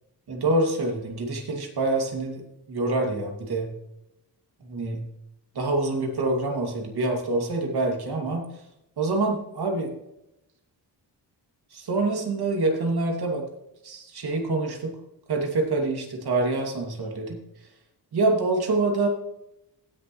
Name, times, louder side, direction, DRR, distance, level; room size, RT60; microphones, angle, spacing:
voice 1, 0.3-3.7 4.6-5.0 5.5-8.5 9.0-9.9 11.7-13.4 13.8-15.0 15.3-17.4 18.1-19.1, right 2 dB, 70° right, 2 dB, 2.5 m, -26 dB
17.5 x 6.9 x 3.1 m, 0.83 s
wide cardioid pair, 145°, 39 cm